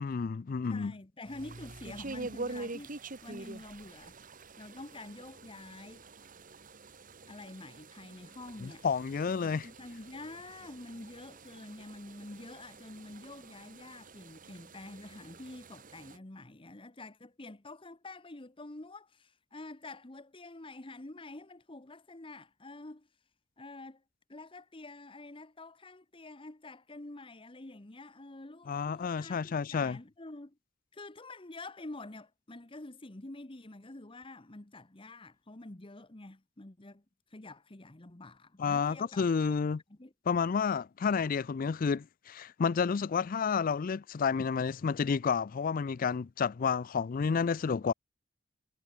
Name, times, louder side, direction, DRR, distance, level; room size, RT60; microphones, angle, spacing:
voice 1, 0.0-0.9 8.6-9.7 28.7-30.0 38.6-39.8 40.3-47.9, left 6 dB, 45° left, 0.4 m, -30 dB
voice 2, 0.7-4.1 4.6-6.1 7.3-8.8 9.3-23.1 23.6-24.0 24.3-30.6 30.9-37.0 37.3-39.3 39.9-40.1, left 2 dB, 25° left, 1.2 m, -47 dB
sound 1, 1.3-16.2, right 3 dB, 45° right, 1.8 m, -46 dB
head